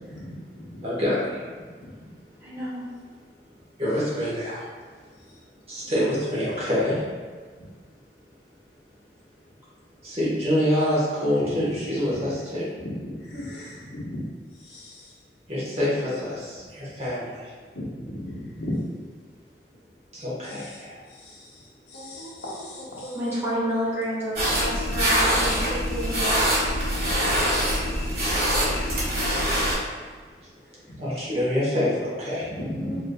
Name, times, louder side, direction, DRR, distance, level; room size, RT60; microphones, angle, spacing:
voice 1, 0.0-0.8 11.4-11.5 12.1-12.2 12.7-12.8 13.2-14.2 14.6-15.1 17.7-18.7 20.5-20.8 21.1-23.4 26.7-28.5 28.8-29.3 30.9-31.0 32.6-32.9, left 1 dB, 80° left, -6 dB, 0.9 m, -38 dB
voice 2, 0.8-1.4 3.8-4.7 5.7-7.0 10.0-12.7 15.5-17.5 20.1-21.0 28.5-29.0 29.4-29.6 31.0-32.5, left 1 dB, 35° right, -7 dB, 0.9 m, -26 dB
voice 3, 2.4-2.8 23.1-26.4 32.5-33.0, equal, 15° right, -9 dB, 1.2 m, -30 dB
sound 1, 24.4-29.7, equal, 55° right, 1.3 m, -24 dB
4.3 x 2.5 x 2.2 m, 1.5 s
head